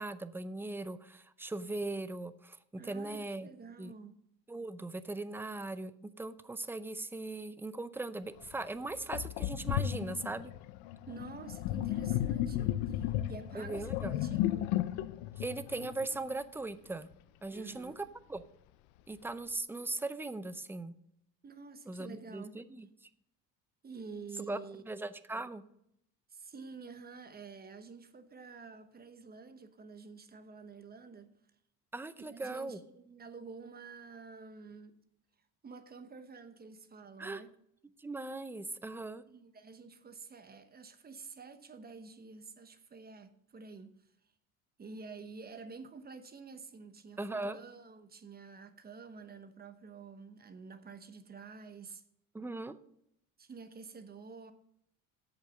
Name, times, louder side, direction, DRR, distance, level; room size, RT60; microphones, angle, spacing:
voice 1, 0.0-3.5 3.8-3.9 4.5-5.9 6.2-10.5 13.5-14.1 15.4-17.1 17.4-18.5 19.1-21.0 21.9-22.9 24.5-24.6 24.8-25.6 31.9-32.8 37.2-37.4 38.0-39.2 47.2-47.6 52.3-52.8, right 2 dB, 5° right, 0.5 m, -39 dB
voice 2, 2.8-4.2 11.0-14.8 17.5-18.0 21.4-22.6 23.8-24.8 26.3-31.3 32.3-35.0 35.6-37.5 39.3-44.0 44.8-52.0 53.4-54.5, right 4 dB, 25° right, 1.0 m, -49 dB
Sink (filling or washing), 8.4-8.5 9.1-16.4, left 13 dB, 90° left, 0.6 m, -34 dB
8.2 x 6.7 x 6.6 m
cardioid pair, 110°, 36 cm